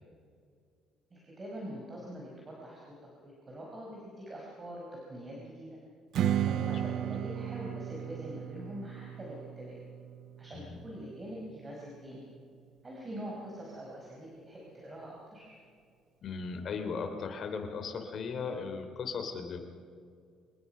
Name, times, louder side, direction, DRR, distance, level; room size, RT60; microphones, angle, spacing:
voice 1, 1.1-3.0 3.2-5.7 6.4-9.8 10.4-12.2 12.8-15.6, equal, 25° right, -3 dB, 5.1 m, -44 dB
Strum, 6.1-11.4, right 10 dB, 65° right, 0.7 m, -35 dB
voice 2, 16.2-19.6, left 5 dB, 50° left, 6 dB, 3.5 m, -37 dB
26.0 x 20.5 x 5.7 m, 2.2 s
cardioid pair, 135°, 0 cm